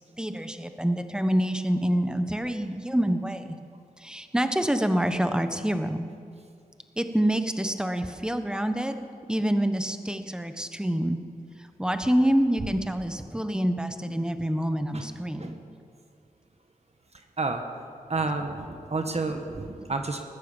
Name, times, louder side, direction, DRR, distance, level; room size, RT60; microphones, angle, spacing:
voice 1, 0.2-3.6 4.0-6.1 7.0-11.2 11.6-15.6, equal, 5° right, 8 dB, 1.2 m, -27 dB
voice 2, 18.1-20.2, right 3 dB, 45° right, 5 dB, 1.4 m, -30 dB
20.5 x 9.6 x 7.2 m, 2.3 s
cardioid pair, 60°, 15 cm